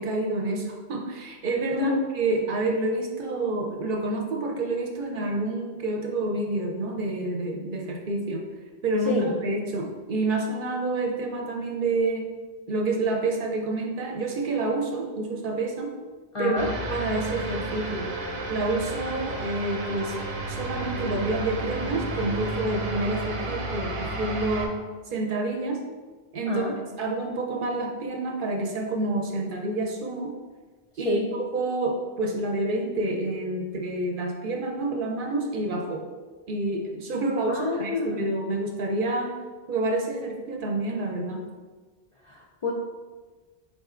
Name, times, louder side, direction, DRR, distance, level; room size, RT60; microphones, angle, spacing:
voice 1, 0.0-8.4 8.8-12.3 12.7-15.9 16.4-16.6 16.9-18.1 18.5-20.2 20.5-24.8 25.1-25.8 26.3-26.6 27.0-30.3 31.0-36.1 36.5-39.3 39.7-41.5, right 2 dB, 60° right, 1 dB, 0.7 m, -28 dB
voice 2, 1.7-2.0 9.1-9.3 16.3-16.7 26.5-26.8 31.0-31.3 37.5-38.2 42.2-42.7, left 3 dB, 55° left, -3 dB, 0.3 m, -27 dB
sound 1, 16.6-24.7, right 2 dB, 85° right, 0.9 m, -32 dB
4.1 x 3.7 x 2.4 m, 1.3 s
omnidirectional pair, 1.0 m